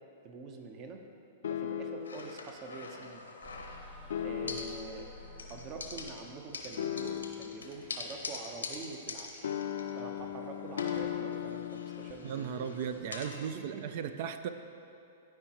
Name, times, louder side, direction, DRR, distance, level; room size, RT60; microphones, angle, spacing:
voice 1, 0.2-1.0 1.5-3.2 4.2-5.1 5.5-9.5 9.9-13.8, right 4 dB, 40° right, 4 dB, 0.9 m, -45 dB
sound 1, 1.4-2.2 4.1-4.9 6.8-7.6 9.4-12.1, left 10 dB, 75° left, 0.4 m, -36 dB
sound 2, 2.0-4.1 4.5-5.1 5.4-10.4 10.7-13.5, left 4 dB, 90° left, 0.8 m, -44 dB
sound 3, 3.4-8.9, left 2 dB, 15° right, 1.2 m, -52 dB
voice 2, 12.2-14.5, right 8 dB, 55° right, 10 dB, 0.4 m, -36 dB
13.0 x 4.8 x 3.0 m, 2.8 s
hypercardioid pair, 115°, 0 cm